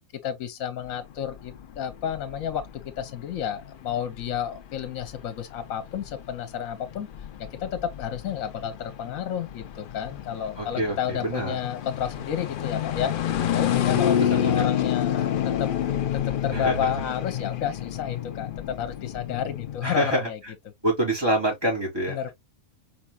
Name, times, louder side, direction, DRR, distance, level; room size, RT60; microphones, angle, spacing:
voice 1, 0.2-2.7 3.0-7.1 7.4-13.1 13.5-15.7 16.1-20.4 22.1-22.3, left 9 dB, 70° left, 1.2 m, -31 dB
sound 1, 0.8-19.8, left 10 dB, 90° left, 0.4 m, -29 dB
voice 2, 10.6-11.5 13.9-14.6 16.5-16.9 19.8-20.2 20.8-22.2, right 1 dB, 15° right, 3.2 m, -26 dB
4.7 x 4.3 x 2.3 m
omnidirectional pair, 1.5 m